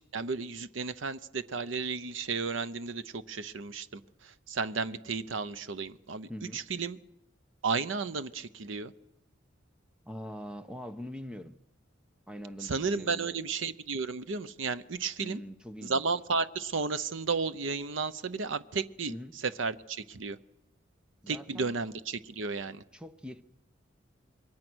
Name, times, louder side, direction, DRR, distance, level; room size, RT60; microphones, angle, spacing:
voice 1, 0.0-7.0 7.6-8.9 12.6-15.4 15.8-19.1 19.4-20.4 21.3-22.8, right 4 dB, 80° right, 0.8 m, -33 dB
voice 2, 6.3-6.6 10.0-11.6 12.3-13.5 15.2-16.0 19.1-19.4 21.2-21.7 22.9-23.4, equal, 5° right, 0.8 m, -43 dB
27.5 x 22.5 x 6.2 m
head